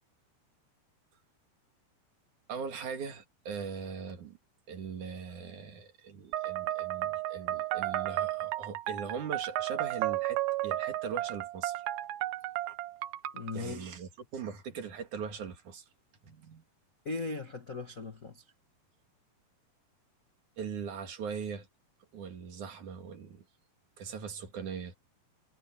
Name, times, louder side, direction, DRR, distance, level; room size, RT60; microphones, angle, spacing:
voice 1, 2.5-4.4 4.7-11.8 12.7-12.8 13.5-15.8 16.2-16.6 20.6-21.7 22.1-23.4 24.0-25.0, right 6 dB, 55° right, 3.2 m, -40 dB
sound 1, 6.3-13.5, right 15 dB, 75° right, 2.5 m, -33 dB
voice 2, 13.3-14.0 17.0-18.4, left 3 dB, 85° left, 0.7 m, -38 dB
omnidirectional pair, 4.7 m